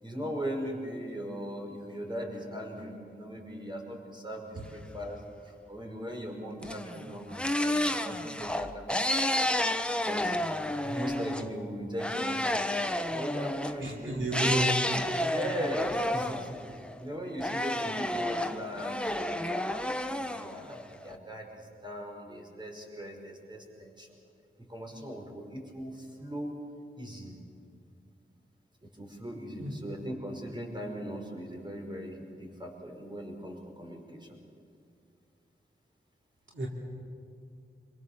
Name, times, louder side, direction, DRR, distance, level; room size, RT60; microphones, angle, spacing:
voice 1, 0.0-9.5 10.0-10.4 10.8-12.5 13.1-14.8 15.3-24.1 24.6-26.5 26.9-27.4 28.8-34.4, equal, 20° right, 1 dB, 5.5 m, -39 dB
sound 1, 6.6-11.5 12.0-13.8 14.3-17.0 17.4-21.1, left 1 dB, 5° left, 1.1 m, -30 dB
voice 2, 13.8-14.8 29.6-29.8 36.5-36.7, right 1 dB, 70° right, -1 dB, 3.1 m, -31 dB
26.5 x 23.5 x 7.4 m, 2.4 s
wide cardioid pair, 65°, 20 cm